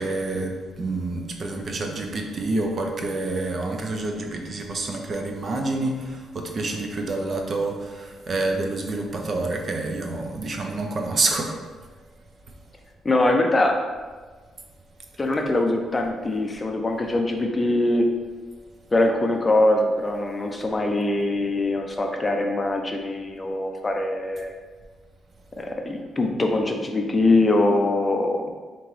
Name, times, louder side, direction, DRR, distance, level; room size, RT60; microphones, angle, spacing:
voice 1, 0.0-11.6, right 2 dB, 45° right, 2 dB, 0.6 m, -28 dB
voice 2, 13.0-13.8 15.2-18.1 18.9-24.5 25.6-28.5, left 2 dB, 25° left, 3 dB, 0.5 m, -22 dB
4.9 x 2.9 x 3.1 m, 1.4 s
cardioid pair, 90°, 0 cm